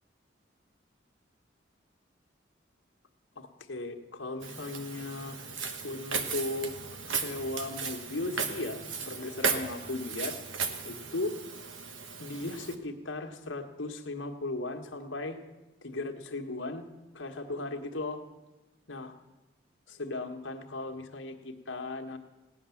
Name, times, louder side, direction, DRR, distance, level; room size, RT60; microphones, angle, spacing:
voice 1, 3.3-5.4 5.8-6.8 7.0-10.3 10.8-11.3 12.2-15.4 15.8-16.8 17.1-18.2 18.9-19.1 19.9-22.2, left 2 dB, 85° left, 4 dB, 1.4 m, -37 dB
Walk footsteps, 4.4-12.7, right 5 dB, 90° right, 1.2 m, -36 dB
17.0 x 10.0 x 7.1 m, 1.1 s
head